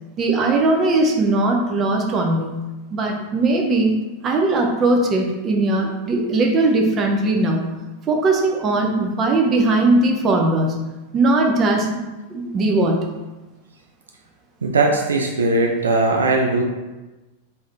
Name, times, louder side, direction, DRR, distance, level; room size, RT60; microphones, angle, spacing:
voice 1, 0.2-2.6 2.9-4.0 4.2-7.7 8.1-10.8 11.1-13.1, right 2 dB, 30° right, 1 dB, 0.6 m, -19 dB
voice 2, 14.6-16.6, right 2 dB, 70° right, 1 dB, 0.3 m, -19 dB
3.5 x 2.6 x 3.3 m, 1.1 s
figure-of-eight pair, 90°, 0 cm